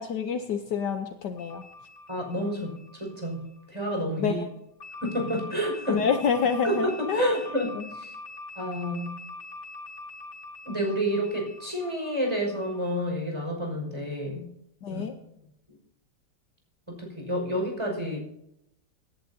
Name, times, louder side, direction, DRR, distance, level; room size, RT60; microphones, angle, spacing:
voice 1, 0.0-1.6 4.2-4.5 5.9-7.4 7.8-7.9 14.8-15.1, left 6 dB, 65° left, 7 dB, 1.4 m, -27 dB
sound 1, 1.4-3.9 4.8-13.1, left 3 dB, 85° left, 4.0 m, -44 dB
voice 2, 2.1-4.4 5.0-6.0 6.6-7.7 7.9-8.1 8.6-9.1 10.6-14.5 14.9-15.0 16.9-18.2, equal, 15° right, 0 dB, 5.6 m, -29 dB
25.0 x 11.5 x 2.8 m, 0.82 s
omnidirectional pair, 2.1 m